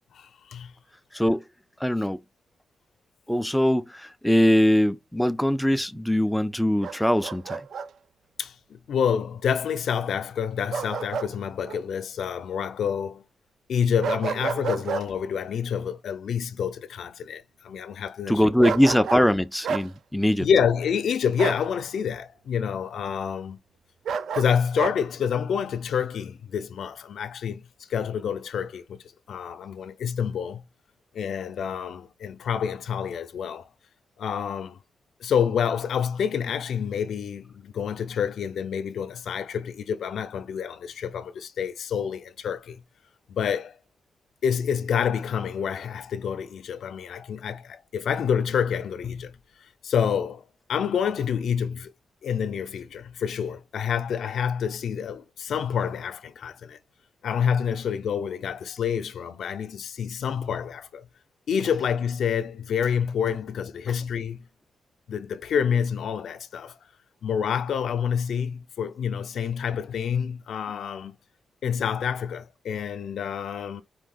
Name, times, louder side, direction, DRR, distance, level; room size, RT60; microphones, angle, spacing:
voice 1, 0.1-0.7 2.0-2.1 8.4-13.2 13.7-18.7 20.4-23.6 24.3-30.6 31.1-33.7 34.2-34.8 35.2-42.8 43.3-43.7 44.4-49.4 49.8-50.4 50.7-51.9 52.2-56.8 57.2-61.1 61.5-64.5 65.1-66.7 67.2-71.2 71.6-73.8, left 7 dB, 70° left, 0.6 m, -28 dB
voice 2, 1.8-2.2 3.3-7.6 18.3-20.5, equal, ahead, 0.4 m, -22 dB
Bark, 6.8-7.9 10.7-11.3 11.7-11.8 14.0-15.1 18.6-19.3 19.6-19.9 21.4-21.7 24.0-25.0, right 6 dB, 70° right, 0.4 m, -30 dB
4.5 x 2.7 x 3.9 m
wide cardioid pair, 165°, 0 cm